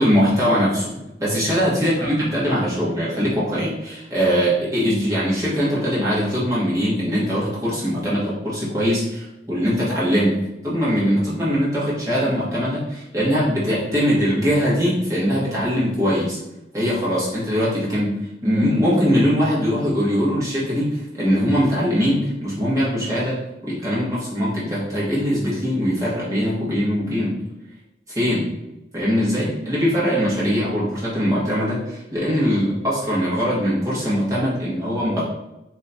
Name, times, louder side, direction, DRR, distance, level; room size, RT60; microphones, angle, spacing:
voice 1, 0.0-10.4 10.6-16.4 16.7-18.2 18.4-27.4 28.1-28.5 28.9-35.2, equal, 20° right, -8 dB, 1.1 m, -21 dB
3.9 x 2.8 x 2.3 m, 0.94 s
head